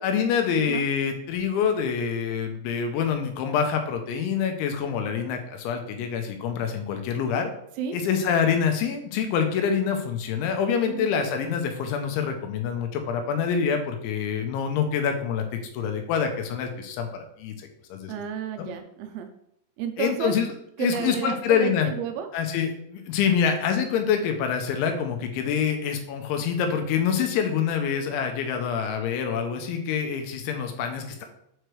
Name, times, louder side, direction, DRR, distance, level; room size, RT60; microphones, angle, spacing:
voice 1, 0.0-7.5 7.9-15.5 15.7-18.1 18.6-18.7 20.0-20.5 20.8-21.9 22.3-31.3, left 7 dB, 85° left, 5 dB, 3.1 m, -26 dB
voice 2, 18.1-19.3 19.8-20.3 20.8-22.3, right 7 dB, 85° right, 7 dB, 2.7 m, -31 dB
7.7 x 4.6 x 3.2 m, 0.74 s
omnidirectional pair, 5.4 m